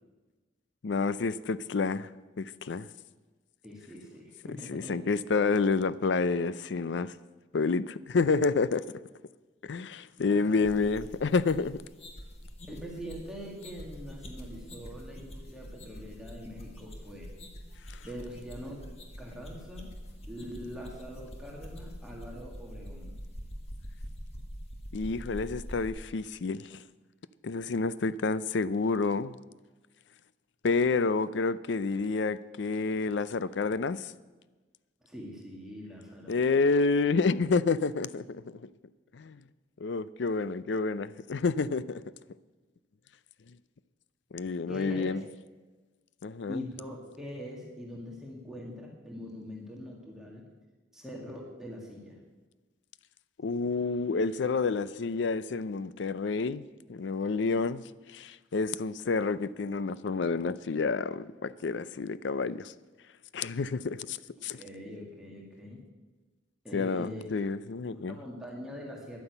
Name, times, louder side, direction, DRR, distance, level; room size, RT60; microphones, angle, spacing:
voice 1, 0.8-2.1 2.4-2.9 4.7-7.1 7.5-8.8 9.6-11.8 24.9-26.8 27.4-29.4 30.6-34.1 36.3-38.4 39.1-39.4 39.8-42.0 44.3-45.2 46.2-46.6 53.4-56.6 56.9-57.8 58.1-62.7 63.3-64.2 64.4-64.6 66.7-68.2, left 4 dB, 70° left, 0.5 m, -29 dB
voice 2, 3.6-5.0 10.2-10.6 12.7-17.3 18.0-18.9 19.2-19.9 20.3-23.1 35.0-36.4 44.7-45.2 46.5-50.5 50.9-52.2 64.4-65.8 66.6-67.3 68.1-69.2, equal, 5° right, 2.0 m, -43 dB
sound 1, 10.6-25.9, equal, 35° left, 1.6 m, -44 dB
10.5 x 9.6 x 8.1 m
head